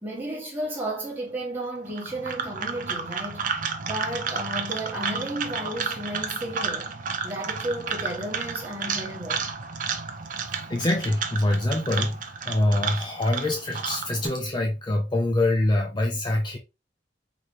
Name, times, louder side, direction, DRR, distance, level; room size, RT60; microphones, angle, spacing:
voice 1, 0.0-6.9 7.2-9.4, right 1 dB, 10° right, 1.5 m, -33 dB
sound 1, 1.9-14.3, right 5 dB, 45° right, 0.6 m, -32 dB
voice 2, 10.5-16.6, left 1 dB, 25° left, 0.5 m, -25 dB
4.0 x 3.1 x 3.1 m
head